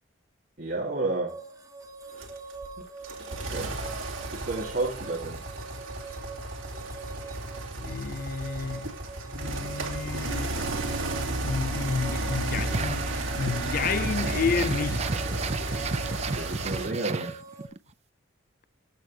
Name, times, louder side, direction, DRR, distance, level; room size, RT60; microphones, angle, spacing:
voice 1, 0.6-1.4 3.4-3.8 4.3-5.4 16.1-17.4, right 2 dB, 55° right, 2.8 m, -31 dB
sound 1, 1.3-17.7, right 3 dB, 15° right, 1.7 m, -44 dB
sound 2, 2.2-16.9, right 2 dB, 85° right, 2.4 m, -33 dB
voice 2, 7.8-8.9 9.3-10.7 11.4-15.2, left 5 dB, 45° left, 0.4 m, -31 dB
sound 3, 12.6-17.8, right 3 dB, 35° right, 0.6 m, -33 dB
14.0 x 6.4 x 3.3 m
head